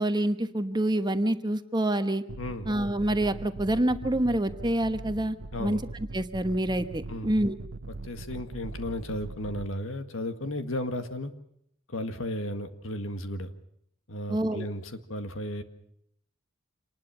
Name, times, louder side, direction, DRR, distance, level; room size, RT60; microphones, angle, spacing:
voice 1, 0.0-2.2 2.7-5.8 6.1-7.5 14.3-14.6, right 1 dB, 20° right, 9 dB, 1.1 m, -27 dB
sound 1, 2.3-9.7, right 2 dB, 75° right, 0.9 m, -41 dB
voice 2, 2.4-2.7 5.5-5.8 7.1-7.3 8.0-11.3 11.9-13.5 14.1-15.6, left 1 dB, 70° left, 9 dB, 1.9 m, -34 dB
27.0 x 20.0 x 5.9 m, 0.71 s
head